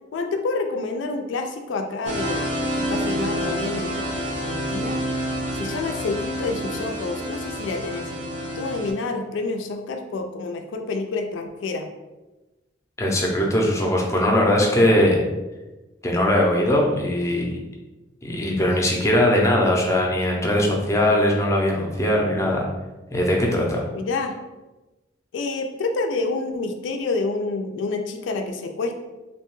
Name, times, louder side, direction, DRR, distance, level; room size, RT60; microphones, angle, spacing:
voice 1, 0.1-2.5 2.9-5.0 5.5-8.1 8.6-11.9 23.9-24.3 25.3-28.9, left 3 dB, 85° left, 5 dB, 0.3 m, -28 dB
sound 1, 2.0-8.9, equal, 40° right, 0.5 m, -28 dB
voice 2, 13.0-15.2 16.0-17.6 18.2-22.6 23.1-23.8, left 1 dB, 15° left, -1 dB, 0.5 m, -20 dB
2.7 x 2.2 x 3.0 m, 1.1 s
head